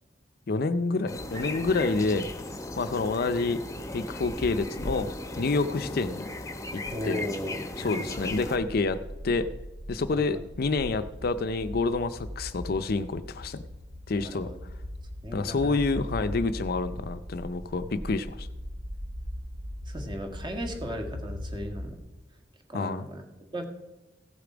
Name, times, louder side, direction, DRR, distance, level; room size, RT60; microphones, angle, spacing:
voice 1, 0.5-2.3 2.8-3.6 3.9-6.3 6.7-7.2 7.8-9.5 9.9-13.6 14.1-14.5 15.3-18.5 22.7-23.1, left 3 dB, 55° left, 12 dB, 0.5 m, -28 dB
sound 1, 1.1-8.6, left 2 dB, 15° left, 0.9 m, -36 dB
voice 2, 6.9-8.3 10.1-10.2 14.2-14.6 15.2-16.0 19.9-22.0 22.7-23.2 23.5-23.6, equal, 25° right, 4 dB, 1.7 m, -36 dB
sound 2, 8.1-22.0, equal, 70° right, 1.5 m, -40 dB
15.5 x 6.8 x 5.0 m, 1.0 s
head